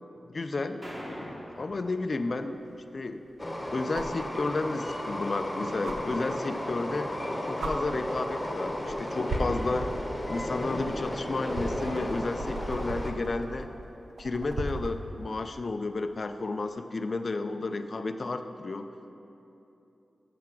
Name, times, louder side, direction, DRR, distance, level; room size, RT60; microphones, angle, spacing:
voice 1, 0.2-2.6 2.9-3.2 3.7-7.1 7.4-9.9 10.3-13.7 14.2-18.9, left 3 dB, 50° left, 8 dB, 0.4 m, -32 dB
sound 1, 0.8-2.8, equal, 15° right, 1.2 m, -44 dB
sound 2, 1.7-1.8 3.9-4.2 5.8-6.0 7.1-7.2 7.6-7.7 8.7-8.9 9.3-15.0 16.6-16.7, right 2 dB, 75° right, 0.8 m, -37 dB
Train, 3.4-13.1, left 1 dB, 20° left, 0.9 m, -34 dB
7.6 x 5.7 x 6.0 m, 2.9 s
cardioid pair, 65°, 0 cm